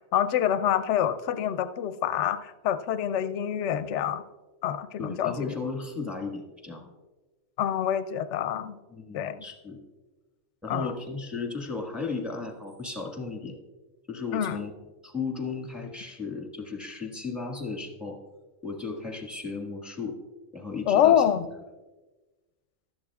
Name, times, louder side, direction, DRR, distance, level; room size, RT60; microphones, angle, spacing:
voice 1, 0.1-4.2 4.6-5.5 7.6-8.8 9.1-9.4 10.7-10.9 14.3-14.6 20.9-21.5, left 10 dB, 65° left, 12 dB, 0.9 m, -26 dB
voice 2, 5.0-6.9 8.9-9.8 10.6-13.6 14.1-14.7 15.0-18.2 18.6-20.2 20.5-21.2, left 4 dB, ahead, 0 dB, 1.5 m, -35 dB
15.5 x 12.0 x 2.4 m, 1.2 s
omnidirectional pair, 1.4 m